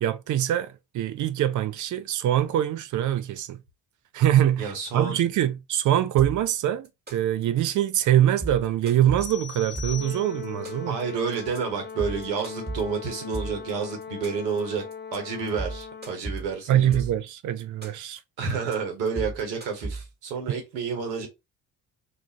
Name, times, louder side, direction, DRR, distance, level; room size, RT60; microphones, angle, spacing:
voice 1, 0.0-3.6 4.1-11.0 16.7-18.2, right 11 dB, 40° right, 0.4 m, -24 dB
voice 2, 4.6-5.2 10.9-14.8 15.1-17.0 18.4-21.3, right 5 dB, 80° right, 1.0 m, -30 dB
sound 1, 6.2-6.5 6.8-7.4 7.7-8.0 8.3-10.1 10.4-11.0 11.3-11.6 11.9-13.7 14.0-14.6 14.9-15.2 15.5-17.3 17.6-18.2 18.5-18.7 19.1-20.3, right 3 dB, 20° right, 1.3 m, -35 dB
sound 2, 9.2-10.7, left 9 dB, 45° left, 1.0 m, -40 dB
Brass instrument, 9.9-16.3, left 6 dB, 20° left, 0.6 m, -40 dB
2.4 x 2.4 x 3.9 m
figure-of-eight pair, 45°, 49 cm